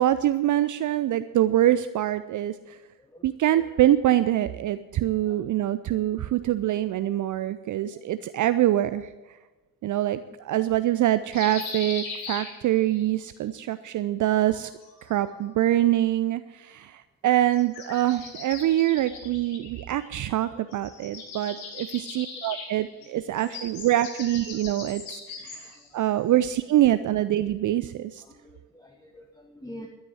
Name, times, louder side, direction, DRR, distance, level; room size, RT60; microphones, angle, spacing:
voice 1, 0.0-2.8 3.2-9.1 9.8-14.7 15.0-28.2, right 13 dB, 40° right, 13 dB, 0.6 m, -24 dB
voice 2, 3.1-3.9 5.2-5.4 7.9-8.1 18.6-18.7 19.1-19.2 20.4-20.7 21.3-22.5 23.0-23.7 24.8-24.9 25.4-26.3 28.2-29.9, equal, 10° left, 2 dB, 1.6 m, -49 dB
sound 1, 11.3-13.1 14.5-15.5 17.5-20.4 20.7-25.9, left 4 dB, 70° left, 2.3 m, -40 dB
12.5 x 9.0 x 8.2 m, 1.2 s
figure-of-eight pair, 45°, 48 cm